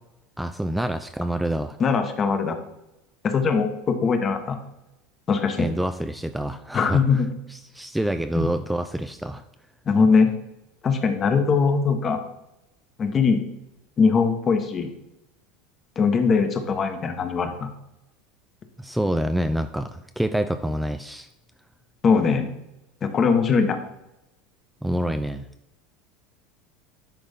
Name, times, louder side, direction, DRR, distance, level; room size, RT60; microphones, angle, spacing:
voice 1, 0.4-1.8 5.6-7.2 7.5-9.4 18.8-21.3 24.8-25.5, right 1 dB, 5° right, 9 dB, 0.4 m, -27 dB
voice 2, 1.8-2.6 3.2-4.6 5.3-5.7 6.7-7.3 8.3-8.5 9.9-10.3 10.8-12.2 13.0-13.4 14.0-14.9 16.0-17.7 22.0-22.5 23.0-23.8, left 5 dB, 35° left, 7 dB, 1.1 m, -21 dB
10.5 x 3.9 x 3.6 m, 0.89 s
hypercardioid pair, 95°, 0 cm